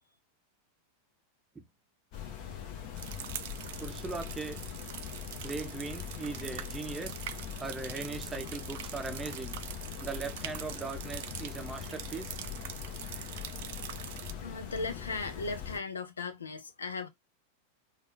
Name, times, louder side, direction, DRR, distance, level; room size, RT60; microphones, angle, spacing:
sound 1, 2.1-15.8, left 9 dB, 45° left, 1.1 m, -42 dB
sound 2, 3.0-14.3, right 11 dB, 55° right, 0.4 m, -44 dB
voice 1, 3.8-4.6 5.4-7.2 7.6-9.6 10.0-12.4, right 4 dB, 10° right, 0.7 m, -39 dB
voice 2, 14.4-17.1, left 3 dB, 70° left, 0.7 m, -37 dB
3.7 x 2.5 x 3.8 m
figure-of-eight pair, 90°, 0 cm